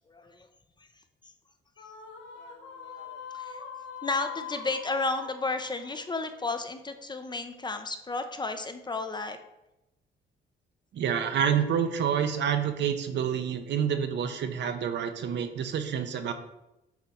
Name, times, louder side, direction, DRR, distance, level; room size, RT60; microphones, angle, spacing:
voice 1, 0.1-0.5 0.8-0.9 2.4-3.6 4.0-9.4, left 3 dB, 20° left, 8 dB, 0.5 m, -33 dB
sound 1, 1.8-7.2, left 6 dB, 70° left, 1.0 m, -43 dB
voice 2, 10.9-16.3, right 8 dB, 65° right, 7 dB, 0.7 m, -28 dB
8.0 x 2.9 x 4.2 m, 0.92 s
cardioid pair, 90°, 20 cm